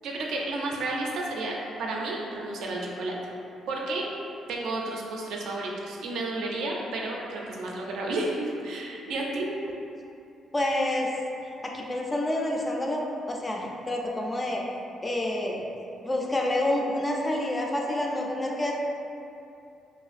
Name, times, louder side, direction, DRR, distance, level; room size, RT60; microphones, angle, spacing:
voice 1, 0.0-3.2 3.7-4.0 4.5-9.5, right 2 dB, 80° right, -2 dB, 0.3 m, -31 dB
voice 2, 10.5-11.1 11.4-13.0 13.3-14.6 15.0-15.6 16.0-18.7, left 1 dB, 20° left, -1 dB, 0.3 m, -28 dB
2.4 x 2.4 x 2.4 m, 2.6 s
cardioid pair, 90°, 0 cm